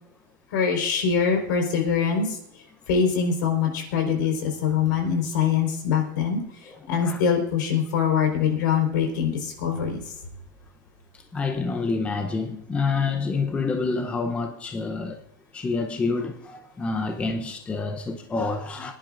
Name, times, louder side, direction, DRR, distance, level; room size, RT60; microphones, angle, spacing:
voice 1, 0.5-2.3 2.9-6.4 6.9-10.0, left 7 dB, 75° left, 4.4 m, -23 dB
voice 2, 6.7-7.2 11.3-15.2 15.5-18.9, left 4 dB, 10° left, 0.7 m, -28 dB
25.0 x 10.5 x 2.5 m
supercardioid pair, 160°, 11 cm